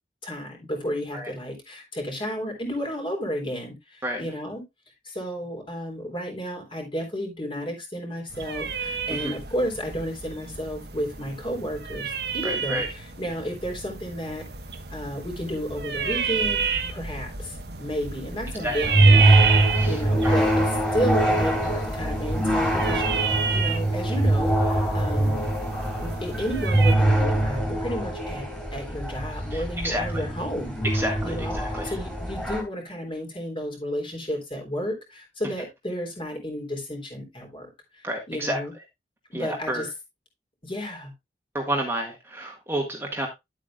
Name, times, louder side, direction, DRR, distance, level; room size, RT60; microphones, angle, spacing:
voice 1, 0.2-4.6 5.0-14.4 14.9-16.6 16.9-23.2 23.5-25.5 26.0-30.8 31.2-37.7 37.9-38.7 39.3-39.9 40.6-41.1, equal, 30° left, 2 dB, 3.7 m, -32 dB
sound 1, 8.3-26.9, right 6 dB, 65° right, 1.3 m, -31 dB
voice 2, 12.4-12.9 18.6-18.8 19.7-20.4 29.5-30.2 30.9-32.0 38.0-38.6 39.3-39.9 41.5-43.3, right 1 dB, 15° right, 1 dB, 1.7 m, -30 dB
sound 2, 18.8-32.6, right 1 dB, 5° left, 3.4 m, -23 dB
11.0 x 8.3 x 2.4 m, 0.21 s
head